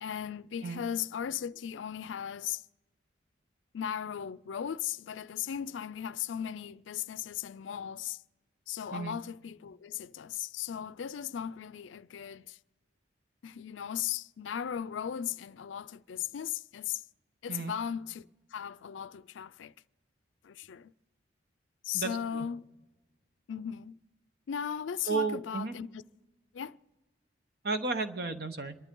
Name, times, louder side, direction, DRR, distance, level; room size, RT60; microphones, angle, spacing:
voice 1, 0.0-2.6 3.7-8.2 8.7-12.6 13.4-17.0 17.4-19.7 20.4-20.9 21.8-22.7 23.5-24.0 24.5-26.0 26.5-26.8, left 9 dB, 80° left, 0.4 m, -37 dB
voice 2, 21.9-22.5 25.1-25.7 27.6-28.8, right 4 dB, 55° right, 1.1 m, -33 dB
27.5 x 11.5 x 3.8 m
head